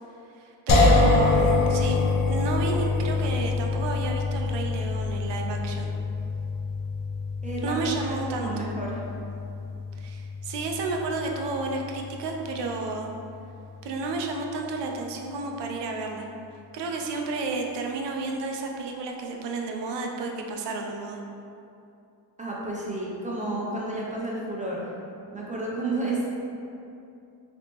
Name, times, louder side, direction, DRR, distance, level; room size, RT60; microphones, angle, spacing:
voice 1, 0.4-2.0 2.3-5.9 7.6-8.7 10.0-13.1 13.8-16.3 16.7-21.2, right 3 dB, 70° right, 1 dB, 0.5 m, -31 dB
sound 1, 0.7-13.8, left 3 dB, 50° left, 0.5 m, -26 dB
voice 2, 7.4-9.0 22.4-24.9 25.3-26.3, right 2 dB, 20° right, -4 dB, 0.3 m, -31 dB
3.4 x 2.9 x 2.9 m, 2.6 s
wide cardioid pair, 165°, 44 cm